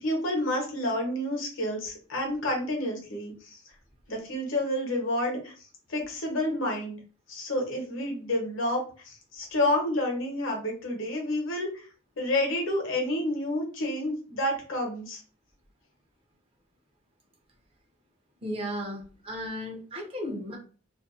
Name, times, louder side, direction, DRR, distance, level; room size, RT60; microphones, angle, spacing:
voice 1, 0.0-3.6 4.1-5.5 5.9-7.0 7.3-11.9 12.2-15.2, left 1 dB, 70° left, 1 dB, 0.9 m, -29 dB
voice 2, 18.4-20.6, equal, 30° right, 2 dB, 0.5 m, -35 dB
2.5 x 2.1 x 2.4 m, 0.38 s
head